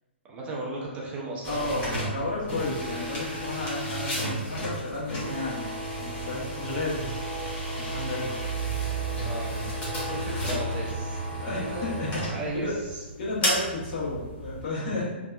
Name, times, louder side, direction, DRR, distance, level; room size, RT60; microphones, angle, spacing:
voice 1, 0.2-2.1 9.2-9.7 10.1-11.9 12.3-13.0, right 2 dB, 20° right, -4 dB, 0.5 m, -36 dB
sound 1, 1.4-14.7, right 1 dB, 20° left, 0.8 m, -32 dB
voice 2, 1.5-7.2 7.7-8.4 11.4-12.7 13.2-15.1, left 2 dB, 50° left, -6 dB, 1.1 m, -32 dB
2.7 x 2.2 x 2.3 m, 1.2 s
hypercardioid pair, 125°, 6 cm